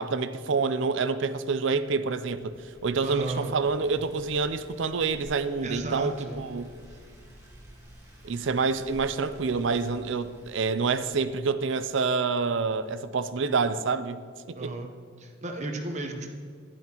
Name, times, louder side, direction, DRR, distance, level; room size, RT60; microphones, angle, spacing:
voice 1, 0.0-2.6 2.8-6.7 8.2-14.2 14.5-14.7, right 4 dB, 60° right, 12 dB, 0.5 m, -27 dB
sound 1, 1.8-11.2, right 1 dB, 15° right, 1.8 m, -51 dB
voice 2, 3.0-3.5 5.6-6.4 6.9-7.0 14.5-14.9 15.2-16.3, right 2 dB, 35° right, 3 dB, 0.9 m, -34 dB
11.0 x 10.5 x 3.0 m, 2.2 s
head